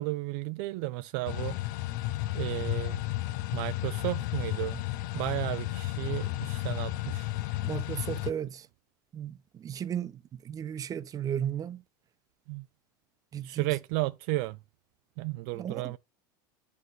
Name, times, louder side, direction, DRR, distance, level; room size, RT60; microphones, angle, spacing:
voice 1, 0.0-1.6 2.3-3.0 3.5-4.8 5.1-7.3 12.5-12.6 13.4-14.6 15.2-16.0, right 20 dB, 65° right, 0.5 m, -33 dB
sound 1, 1.3-8.3, left 16 dB, 70° left, 0.6 m, -33 dB
voice 2, 7.6-8.7 9.1-11.8 13.3-13.7 15.5-16.0, right 9 dB, 35° right, 0.9 m, -35 dB
8.3 x 4.7 x 4.1 m
hypercardioid pair, 95°, 11 cm